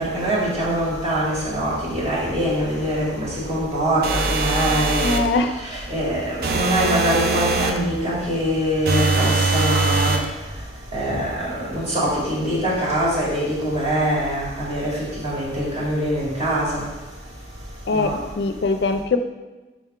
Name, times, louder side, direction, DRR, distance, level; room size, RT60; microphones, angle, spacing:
voice 1, 0.0-5.3 5.7-10.2 10.9-14.9 15.2-16.8 17.9-18.2, equal, 35° right, -7 dB, 2.1 m, -23 dB
sound 1, 4.0-5.3 6.4-7.8 8.9-10.3, right 3 dB, 55° right, 0.5 m, -22 dB
voice 2, 5.0-5.5 17.9-19.2, left 3 dB, 70° left, 7 dB, 0.4 m, -22 dB
5.3 x 3.6 x 5.4 m, 1.2 s
head